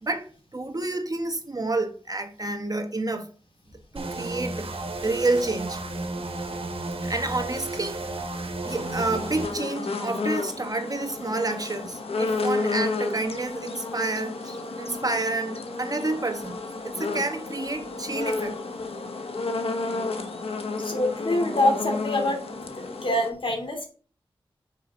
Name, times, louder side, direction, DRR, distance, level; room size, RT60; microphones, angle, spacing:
voice 1, 0.0-3.3 3.9-4.7 5.0-5.8 7.0-8.0 8.6-18.6, right 2 dB, 40° right, 1.3 m, -29 dB
sound 1, 4.0-9.5, right 2 dB, 80° right, 1.5 m, -33 dB
sound 2, 8.7-23.3, left 3 dB, 90° left, 1.1 m, -31 dB
voice 2, 20.8-23.9, left 1 dB, 65° left, 2.6 m, -26 dB
6.3 x 5.1 x 6.0 m
wide cardioid pair, 50°, 10 cm